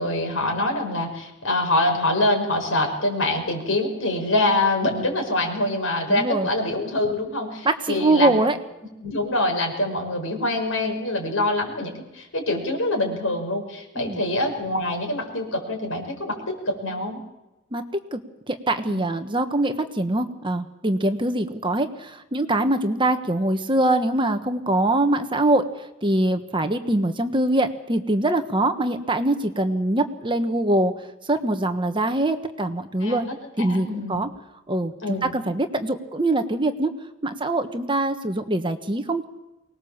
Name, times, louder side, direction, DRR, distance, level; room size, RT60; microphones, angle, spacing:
voice 1, 0.0-8.4 9.0-17.2 18.9-19.0 33.0-33.3 33.7-34.2 35.0-35.3, left 1 dB, 85° left, 2 dB, 6.0 m, -25 dB
voice 2, 6.1-6.5 7.6-8.6 14.0-14.2 17.7-18.2 18.5-25.6 26.0-30.9 31.3-33.2 33.6-34.3 34.7-36.9 37.2-39.2, right 1 dB, 25° right, 8 dB, 1.3 m, -23 dB
24.0 x 19.5 x 7.3 m, 0.99 s
head